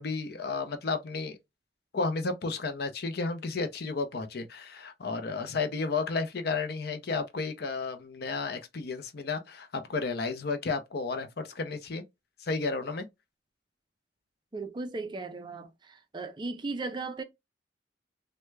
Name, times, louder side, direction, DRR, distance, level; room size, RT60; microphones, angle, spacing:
voice 1, 0.0-1.4 1.9-12.0 12.4-13.1, left 4 dB, 60° left, 0.5 m, -32 dB
voice 2, 14.5-17.2, right 3 dB, 25° right, 0.4 m, -36 dB
3.3 x 2.2 x 3.1 m
head